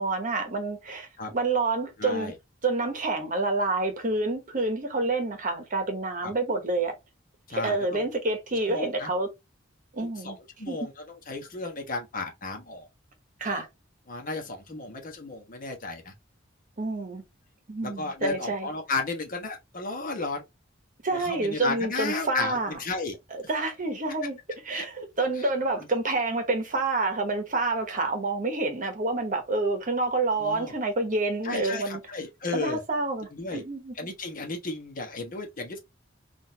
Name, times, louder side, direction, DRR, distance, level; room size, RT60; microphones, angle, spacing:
voice 1, 0.0-2.3 2.6-6.9 7.5-9.3 9.9-10.4 10.7-10.8 13.4-13.7 16.8-17.2 17.7-18.7 21.0-22.8 23.3-24.4 24.6-32.0 32.5-33.9, right 2 dB, 45° right, 0.9 m, -28 dB
voice 2, 2.0-2.3 6.2-6.3 7.5-8.0 8.7-9.1 10.1-12.9 14.1-16.1 17.8-20.4 21.2-23.2 24.7-24.9 25.4-25.5 30.4-30.7 31.4-32.8 33.3-33.6 34.0-35.8, left 3 dB, 45° left, 1.2 m, -34 dB
3.9 x 2.6 x 2.7 m
head